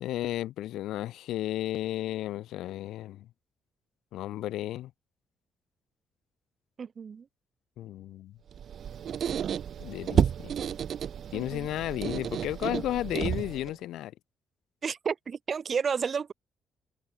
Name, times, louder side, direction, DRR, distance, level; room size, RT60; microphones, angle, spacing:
voice 1, 0.0-3.3 4.1-4.9 7.8-8.3 9.8-10.5 11.3-14.1, left 14 dB, 85° left, 0.4 m, -33 dB
voice 2, 6.8-7.2 11.3-11.7 14.8-16.3, right 6 dB, 45° right, 1.1 m, -31 dB
Squeak, 8.5-13.8, right 8 dB, 60° right, 0.5 m, -31 dB
cardioid pair, 90°, 0 cm